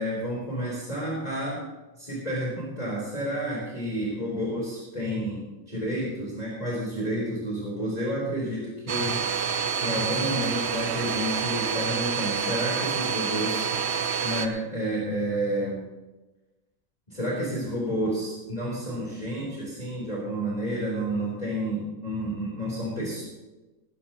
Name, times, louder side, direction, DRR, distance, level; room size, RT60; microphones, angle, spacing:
voice 1, 0.0-1.6 2.0-9.2 9.8-13.7 14.2-15.8 17.1-23.2, right 1 dB, 20° left, -6 dB, 4.2 m, -30 dB
Domestic sounds home sounds, 8.9-14.5, right 7 dB, 55° right, 0.8 m, -28 dB
19.0 x 13.5 x 3.1 m, 1.1 s
omnidirectional pair, 2.0 m